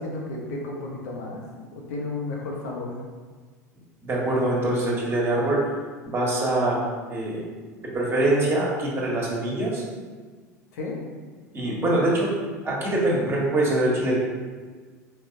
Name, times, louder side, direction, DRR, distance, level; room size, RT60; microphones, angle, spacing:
voice 1, 0.0-1.5 1.7-2.9 10.7-11.0, left 2 dB, 65° left, -2 dB, 0.9 m, -32 dB
voice 2, 4.0-5.6 6.1-6.8 7.1-7.4 7.9-9.8 11.5-12.3 12.6-14.2, right 1 dB, 25° right, -4 dB, 1.4 m, -23 dB
4.6 x 3.4 x 2.7 m, 1.5 s
figure-of-eight pair, 75°, 9 cm